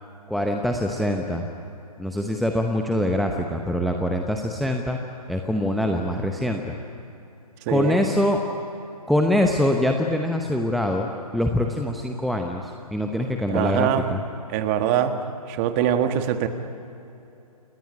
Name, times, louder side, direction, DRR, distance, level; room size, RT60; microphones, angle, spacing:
voice 1, 0.3-1.5 2.0-5.0 5.3-6.7 7.7-8.4 9.1-14.2, left 1 dB, ahead, 3 dB, 0.8 m, -24 dB
voice 2, 7.7-8.0 13.5-14.0 14.5-15.1 15.5-16.5, right 10 dB, 25° right, 8 dB, 1.6 m, -23 dB
29.0 x 19.5 x 10.0 m, 2.9 s
figure-of-eight pair, 135°, 20 cm